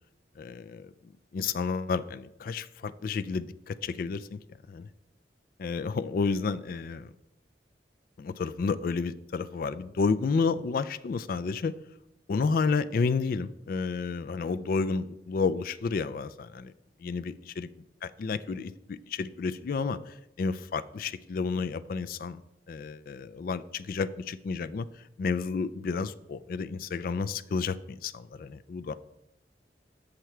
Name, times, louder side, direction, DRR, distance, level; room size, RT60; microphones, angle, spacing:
voice 1, 0.4-0.9 1.3-4.4 4.7-4.9 5.6-7.1 8.2-11.7 12.3-16.7 17.0-17.7 18.2-22.4 22.7-24.9 25.2-28.9, left 4 dB, 55° left, 12 dB, 0.3 m, -31 dB
7.0 x 6.4 x 4.5 m, 0.83 s
head